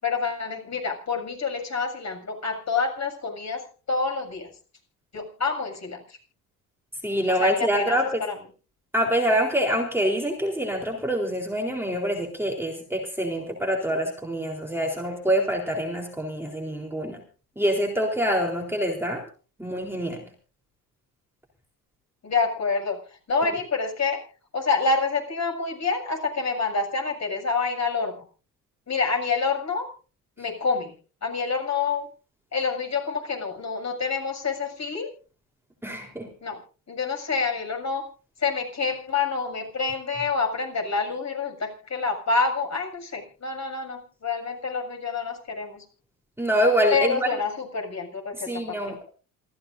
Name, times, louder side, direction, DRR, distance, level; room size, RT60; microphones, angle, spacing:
voice 1, 0.0-4.5 5.1-6.2 7.4-8.3 22.2-23.0 23.3-24.2 24.5-28.2 28.9-29.9 30.4-30.9 31.2-32.1 32.5-35.1 36.4-36.6 36.9-38.1 38.4-45.8 46.9-48.8, left 4 dB, 35° left, 3 dB, 7.1 m, -27 dB
voice 2, 7.0-8.2 8.9-17.2 17.6-19.2 19.6-20.2 35.8-36.3 46.4-47.3 48.3-49.1, equal, 5° right, 0 dB, 3.9 m, -25 dB
28.0 x 14.5 x 2.6 m, 0.38 s
hypercardioid pair, 65°, 49 cm